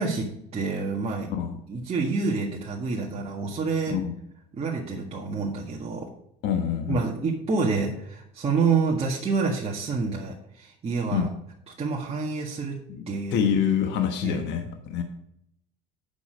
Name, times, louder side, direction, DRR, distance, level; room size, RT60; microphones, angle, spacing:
voice 1, 0.0-1.3 1.7-4.0 4.5-6.1 6.9-11.3 11.8-12.8 13.1-13.5 14.2-14.4, right 4 dB, 30° right, -3 dB, 1.8 m, -28 dB
voice 2, 6.4-7.0 11.1-11.3 12.9-13.0 13.3-15.0, left 8 dB, 65° left, 5 dB, 1.3 m, -26 dB
8.3 x 6.3 x 5.2 m, 0.75 s
supercardioid pair, 95°, 20 cm